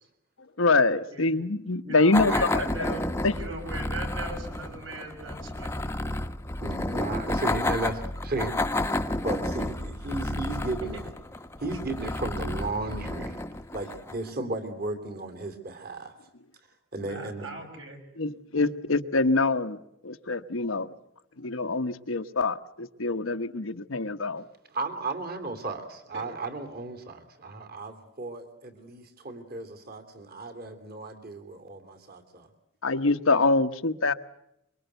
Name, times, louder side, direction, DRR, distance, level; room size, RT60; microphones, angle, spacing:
voice 1, 0.6-2.7 3.2-3.3 18.2-19.8 20.0-20.9 21.4-24.5 32.8-34.1, left 3 dB, 90° left, 8 dB, 1.2 m, -25 dB
voice 2, 1.8-3.0 3.3-6.0 17.0-18.0 26.1-26.2, right 2 dB, 70° right, 3 dB, 6.1 m, -39 dB
sound 1, 2.1-14.3, left 1 dB, 15° left, 0.9 m, -31 dB
voice 3, 6.6-8.5 9.2-11.0 11.6-13.4 13.7-16.1 16.9-17.5 24.7-32.5, right 2 dB, 50° right, 8 dB, 2.9 m, -35 dB
25.0 x 23.5 x 8.1 m, 0.82 s
head